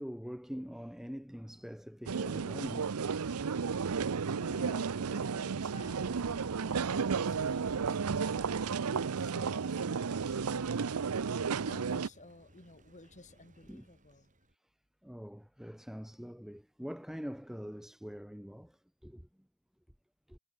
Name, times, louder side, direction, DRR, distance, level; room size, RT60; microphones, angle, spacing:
voice 1, 0.0-3.3 13.7-13.9 15.0-19.3 20.3-20.4, equal, ahead, 0.6 m, -44 dB
sound 1, 2.1-12.1, right 5 dB, 85° right, 0.6 m, -33 dB
voice 2, 4.3-10.8 11.4-14.3, left 2 dB, 35° left, 2.2 m, -54 dB
Thunder, 6.0-14.5, right 1 dB, 35° right, 5.7 m, -59 dB
head